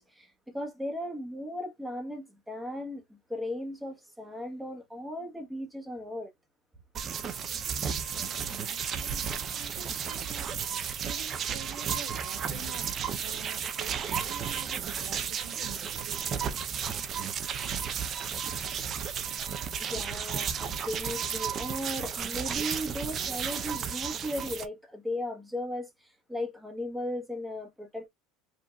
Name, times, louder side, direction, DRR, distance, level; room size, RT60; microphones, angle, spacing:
voice 1, 0.0-6.3 19.8-28.1, left 1 dB, 5° right, 1.3 m, -37 dB
sound 1, 6.9-24.6, right 7 dB, 35° right, 0.7 m, -33 dB
voice 2, 8.2-16.6, right 7 dB, 75° right, 2.0 m, -48 dB
5.2 x 2.7 x 2.4 m
supercardioid pair, 120°, 0 cm